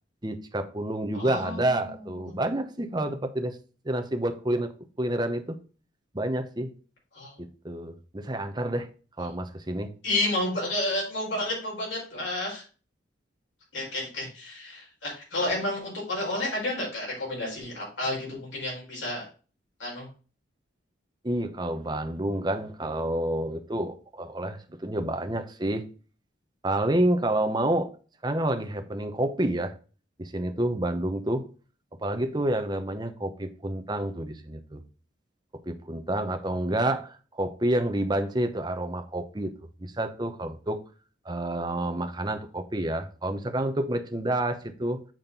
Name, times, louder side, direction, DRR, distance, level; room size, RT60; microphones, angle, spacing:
voice 1, 0.2-3.6 3.8-4.7 5.0-5.6 6.1-6.7 7.4-8.9 9.2-9.9 21.2-25.9 26.6-27.9 28.2-29.7 30.2-31.5 32.0-34.8 35.7-39.5 39.8-40.8 41.3-45.0, right 1 dB, 25° right, 0.8 m, -29 dB
voice 2, 1.1-2.3 7.1-7.3 10.0-12.6 13.7-19.2 19.8-20.1, left 1 dB, 80° left, 4.6 m, -31 dB
7.5 x 4.3 x 5.3 m
head